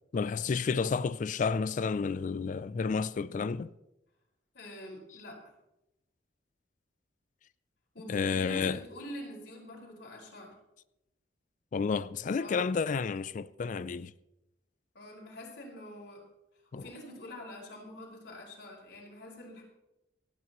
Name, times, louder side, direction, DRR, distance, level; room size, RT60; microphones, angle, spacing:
voice 1, 0.1-3.7 8.1-8.8 11.7-14.1 16.7-16.8, left 5 dB, 45° left, 0.3 m, -31 dB
voice 2, 4.5-5.4 7.9-10.5 12.4-12.7 14.9-16.2 16.7-19.6, left 1 dB, 75° left, 4.8 m, -45 dB
27.0 x 9.4 x 3.1 m
head